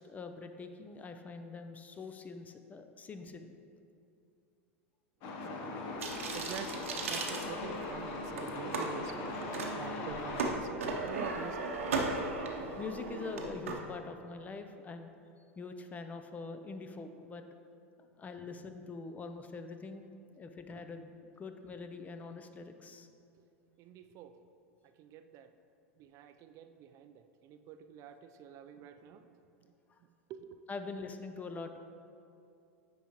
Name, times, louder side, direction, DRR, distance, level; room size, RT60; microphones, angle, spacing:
voice 1, 0.0-3.5 12.0-12.4 12.8-15.1 15.6-17.4 18.0-20.0 20.3-23.1 29.9-30.0 30.7-31.8, left 4 dB, 20° left, 7 dB, 0.5 m, -44 dB
Truck, 5.2-10.5, left 2 dB, 55° left, 0.9 m, -39 dB
voice 2, 5.5-6.0 6.3-11.7 23.8-24.4 25.0-25.5 26.0-29.4 30.3-30.6, right 8 dB, 45° right, 8 dB, 0.4 m, -47 dB
sound 1, 6.0-8.0 8.4-8.9 9.4-9.7 10.0-13.7, right 3 dB, 80° right, 0.8 m, -36 dB
9.0 x 4.9 x 3.0 m, 2.5 s
hypercardioid pair, 95°, 7 cm